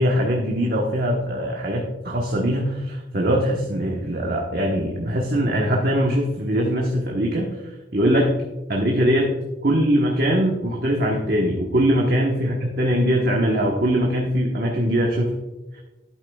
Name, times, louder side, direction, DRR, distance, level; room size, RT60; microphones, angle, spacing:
voice 1, 0.0-7.5 7.9-8.4 8.7-9.3 9.6-15.3, equal, 55° right, -1 dB, 1.1 m, -21 dB
11.5 x 8.8 x 2.3 m, 1.1 s
head